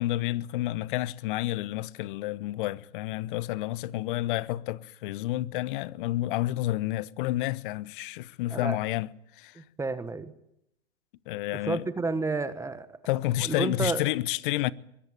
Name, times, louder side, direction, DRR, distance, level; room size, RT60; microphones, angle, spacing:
voice 1, 0.0-9.1 9.4-9.6 11.3-11.9 13.1-14.7, left 16 dB, 45° left, 1.0 m, -30 dB
voice 2, 9.5-10.3 11.6-12.9 13.4-14.0, right 3 dB, 10° right, 1.3 m, -30 dB
23.0 x 22.5 x 8.9 m
hypercardioid pair, 115°, 34 cm